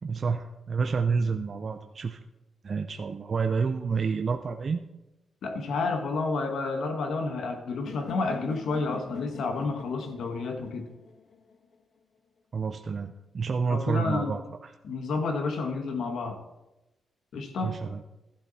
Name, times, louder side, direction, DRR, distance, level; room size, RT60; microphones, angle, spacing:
voice 1, 0.0-2.2 2.6-4.8 12.5-14.7 17.6-18.0, right 5 dB, 40° right, 5 dB, 0.6 m, -29 dB
voice 2, 5.4-10.9 13.7-14.3 14.8-16.4 17.3-17.8, left 3 dB, 75° left, 5 dB, 1.6 m, -30 dB
sound 1, 7.9-11.8, left 6 dB, 50° left, 0.8 m, -44 dB
13.5 x 12.0 x 4.2 m, 0.98 s
wide cardioid pair, 150°, 0 cm